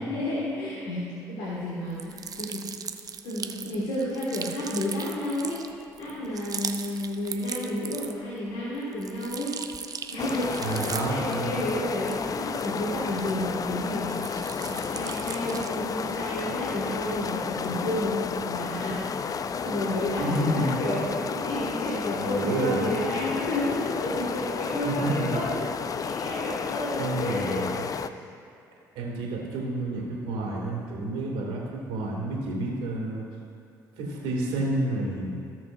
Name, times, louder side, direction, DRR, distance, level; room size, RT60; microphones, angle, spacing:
voice 1, 0.0-2.7 3.2-5.6 6.0-9.5 10.1-27.8 28.1-28.2, left 1 dB, 70° left, -7 dB, 2.0 m, -31 dB
sound 1, 1.9-8.4 8.7-13.6 14.0-15.9, right 6 dB, 40° right, 0.7 m, -39 dB
sound 2, 10.2-28.1, left 6 dB, 40° left, 0.4 m, -32 dB
voice 2, 10.6-11.7 20.2-20.7 22.2-22.9 24.8-25.4 27.0-27.8 28.9-33.2 34.0-35.3, right 2 dB, 75° right, -3 dB, 2.4 m, -29 dB
17.5 x 6.4 x 2.6 m, 2.5 s
hypercardioid pair, 55°, 9 cm